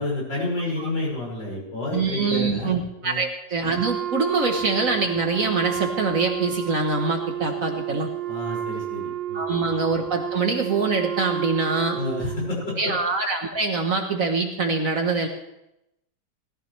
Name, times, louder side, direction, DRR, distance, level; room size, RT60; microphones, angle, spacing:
voice 1, 0.0-3.2 8.3-9.7 11.9-12.9, left 2 dB, 70° left, -5 dB, 6.5 m, -30 dB
voice 2, 1.9-8.1 9.3-12.0 12.8-15.3, right 4 dB, 50° right, 3 dB, 1.4 m, -24 dB
Wind instrument woodwind instrument, 3.7-12.5, right 11 dB, 75° right, 1.8 m, -31 dB
18.5 x 13.5 x 3.3 m, 0.85 s
omnidirectional pair, 2.1 m